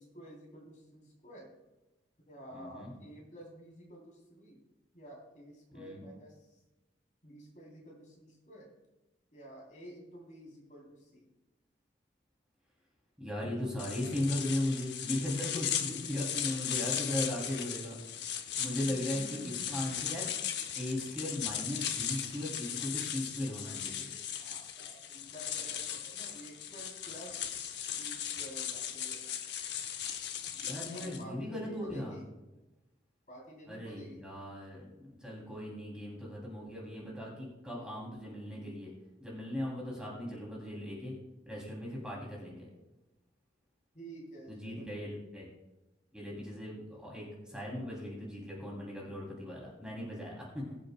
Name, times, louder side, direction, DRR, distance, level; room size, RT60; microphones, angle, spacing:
voice 1, 0.0-1.5 2.3-4.6 4.9-6.6 7.2-8.7 9.3-11.3 18.8-19.8 24.4-29.2 30.7-32.3 33.3-34.3 43.9-45.1, right 1 dB, 45° left, -2 dB, 3.3 m, -51 dB
voice 2, 2.5-2.9 5.7-6.0 13.2-18.3 18.6-20.3 20.7-24.1 30.6-32.1 33.7-38.9 39.2-41.1 41.5-42.7 44.5-45.5 46.1-50.8, left 1 dB, 5° right, -4 dB, 2.8 m, -38 dB
sound 1, 13.8-31.2, left 9 dB, 75° left, 0.8 m, -37 dB
21.0 x 7.6 x 2.2 m, 1.0 s
head